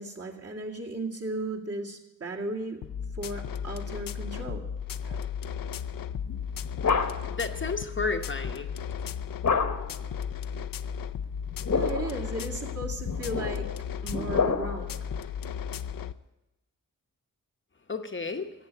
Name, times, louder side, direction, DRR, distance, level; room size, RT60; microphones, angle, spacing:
voice 1, 0.0-2.8 3.1-4.7 5.0-5.2 11.7-13.7 14.0-15.0, right 2 dB, 45° right, -1 dB, 2.3 m, -35 dB
sound 1, 2.8-16.1, left 7 dB, 70° left, 0.6 m, -35 dB
sound 2, 6.3-7.4 9.4-10.0 11.4-12.2 13.0-15.0, left 5 dB, 55° left, 1.2 m, -29 dB
voice 2, 7.3-8.7 17.9-18.5, left 4 dB, 35° left, 5 dB, 0.9 m, -32 dB
15.0 x 8.1 x 8.8 m, 0.98 s
wide cardioid pair, 105°, 34 cm